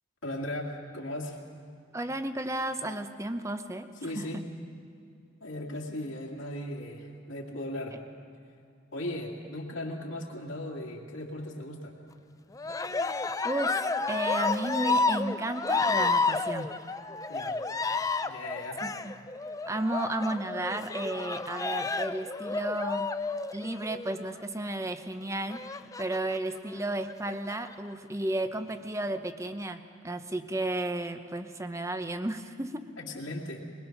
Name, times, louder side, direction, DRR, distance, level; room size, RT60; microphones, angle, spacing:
voice 1, 0.2-1.4 4.0-4.5 5.4-8.0 8.9-12.0 17.3-17.6 18.2-18.8 33.0-33.7, left 1 dB, 80° left, -3 dB, 2.2 m, -37 dB
voice 2, 1.9-3.9 4.1-4.4 13.4-16.7 18.8-19.1 19.7-23.1 23.5-25.6 26.0-32.8, right 1 dB, 15° right, 9 dB, 0.7 m, -33 dB
Cheering, 12.6-24.3 25.5-26.4 27.1-27.7, left 3 dB, 15° left, 0.4 m, -31 dB
21.5 x 21.0 x 5.9 m, 2.4 s
head